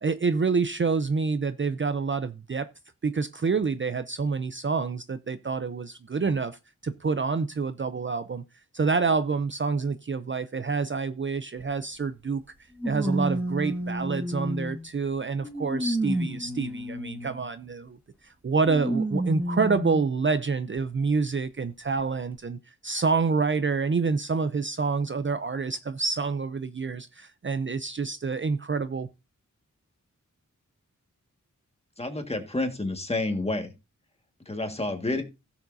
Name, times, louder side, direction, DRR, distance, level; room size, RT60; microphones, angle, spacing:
voice 1, 0.0-2.7 3.0-8.4 8.7-12.4 12.8-29.1, right 4 dB, 40° right, 0.5 m, -27 dB
sound 1, 11.6-11.7 12.8-14.9 15.4-17.5 18.6-20.1 20.8-20.9 22.0-22.1, right 1 dB, 5° right, 1.6 m, -30 dB
voice 2, 32.0-33.7 34.5-35.2, left 2 dB, 20° left, 1.7 m, -29 dB
16.0 x 7.2 x 2.6 m
wide cardioid pair, 105°, 32 cm